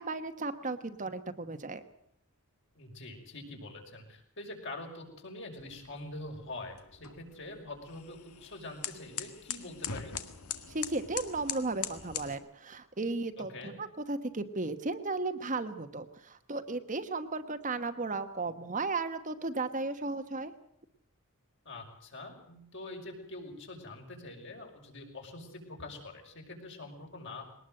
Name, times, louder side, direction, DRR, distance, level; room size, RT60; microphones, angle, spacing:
voice 1, 0.0-1.8 10.7-20.5, right 3 dB, 35° right, 8 dB, 1.2 m, -35 dB
voice 2, 2.8-10.2 13.4-13.8 21.6-27.5, left 2 dB, 55° left, 2 dB, 5.9 m, -45 dB
sound 1, 5.6-12.3, left 9 dB, 85° left, 1.9 m, -42 dB
22.0 x 19.5 x 7.8 m, 0.72 s
head